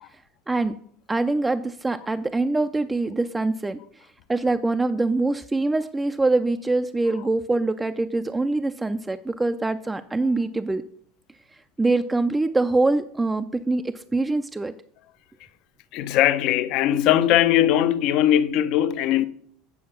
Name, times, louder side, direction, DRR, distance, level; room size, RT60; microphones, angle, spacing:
voice 1, 1.1-3.8 4.3-10.8 11.8-14.7, right 2 dB, 10° right, 0.3 m, -24 dB
voice 2, 15.9-19.2, left 12 dB, 60° left, 0.5 m, -20 dB
8.4 x 4.6 x 5.8 m
supercardioid pair, 125°, 0 cm